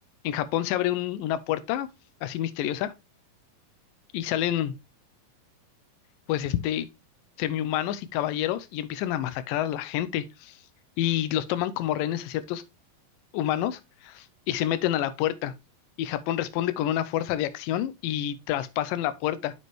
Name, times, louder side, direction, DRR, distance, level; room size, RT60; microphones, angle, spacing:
voice 1, 0.2-1.9 2.2-2.9 4.1-4.8 6.3-6.9 7.4-10.5 11.0-12.6 13.3-15.5 16.0-19.5, left 12 dB, 80° left, 2.1 m, -28 dB
7.7 x 5.5 x 3.1 m
omnidirectional pair, 4.3 m